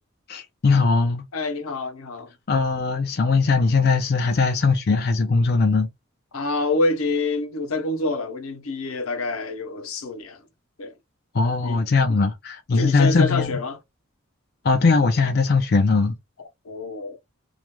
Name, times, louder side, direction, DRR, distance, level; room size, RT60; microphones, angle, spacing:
voice 1, 0.3-1.2 2.5-5.9 11.3-13.6 14.6-16.1, left 4 dB, 45° left, 0.4 m, -20 dB
voice 2, 1.3-2.3 6.3-10.4 10.8-10.9 11.6-11.8 12.1-12.2 12.7-13.8 16.4-17.2, left 2 dB, 85° left, 0.7 m, -27 dB
2.4 x 2.1 x 2.9 m
head